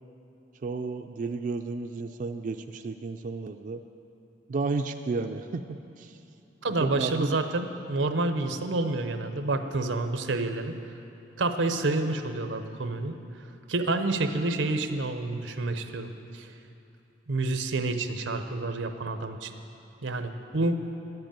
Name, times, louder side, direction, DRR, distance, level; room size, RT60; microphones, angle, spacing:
voice 1, 0.6-3.8 4.5-6.2 6.8-7.4, right 3 dB, 45° right, 6 dB, 0.4 m, -32 dB
voice 2, 6.6-10.7 11.4-13.1 13.7-16.5 17.3-19.5 20.0-20.7, right 2 dB, 90° right, 8 dB, 0.8 m, -28 dB
11.0 x 7.9 x 8.9 m, 2.8 s
head